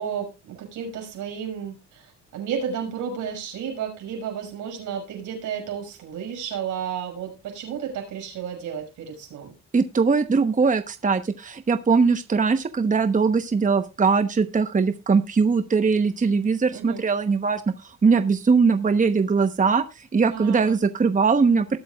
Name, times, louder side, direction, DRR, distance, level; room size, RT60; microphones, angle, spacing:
voice 1, 0.0-9.5 16.7-17.0 20.3-20.8, right 7 dB, 80° right, 3 dB, 6.1 m, -32 dB
voice 2, 9.7-21.8, right 5 dB, 25° right, 9 dB, 1.0 m, -21 dB
20.0 x 8.2 x 2.4 m, 0.27 s
cardioid pair, 90°, 30 cm